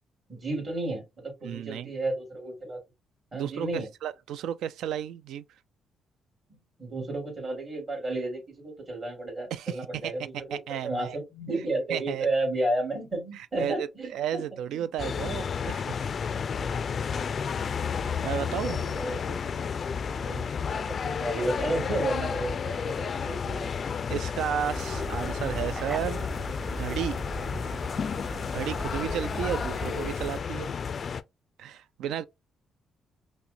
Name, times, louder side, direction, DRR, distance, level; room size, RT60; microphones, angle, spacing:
voice 1, 0.3-2.8 3.3-3.9 6.5-14.4 14.7-14.9 16.3-17.1 17.8-19.5 20.1-23.8, right 2 dB, 40° right, 2.2 m, -33 dB
voice 2, 1.4-1.9 3.3-5.4 9.5-10.1 10.5-11.2 11.9-12.3 13.3-16.0 18.2-18.9 24.1-26.3 26.7-27.2 28.5-30.7 31.6-32.2, right 10 dB, 80° right, 0.3 m, -33 dB
sound 1, 15.0-31.2, left 6 dB, 45° left, 0.3 m, -32 dB
sound 2, 24.6-30.4, equal, 15° right, 0.8 m, -37 dB
5.5 x 2.1 x 2.6 m
cardioid pair, 90°, 0 cm